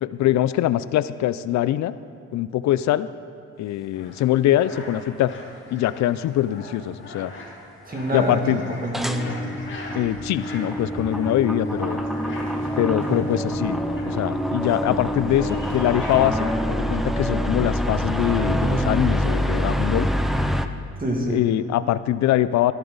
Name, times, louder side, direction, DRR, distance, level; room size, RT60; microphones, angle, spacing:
voice 1, 0.0-1.9 2.3-3.1 3.6-5.3 5.7-7.3 8.1-8.6 9.9-12.0 12.8-13.8 14.1-20.1 21.3-22.7, left 13 dB, 65° left, 15 dB, 0.5 m, -23 dB
sound 1, 3.9-16.5, left 2 dB, 40° left, 2.5 m, -42 dB
sound 2, 4.2-4.3 8.9-20.7, equal, ahead, 0.5 m, -25 dB
voice 2, 7.9-9.4 13.1-13.2 21.0-21.4, right 1 dB, 30° right, -1 dB, 2.3 m, -26 dB
12.5 x 11.0 x 4.0 m, 2.9 s
cardioid pair, 90°, 30 cm